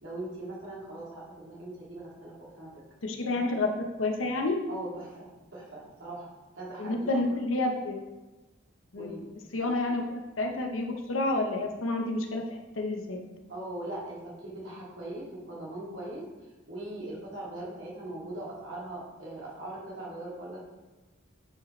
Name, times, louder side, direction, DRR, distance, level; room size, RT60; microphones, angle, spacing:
voice 1, 0.0-2.8 4.7-7.1 8.9-9.3 13.5-16.3 16.7-20.6, right 1 dB, 70° right, -6 dB, 2.4 m, -40 dB
voice 2, 3.0-4.6 6.8-8.0 8.9-9.2 9.5-13.2, left 2 dB, 90° left, 3 dB, 0.9 m, -29 dB
8.6 x 5.2 x 3.2 m, 1.2 s
head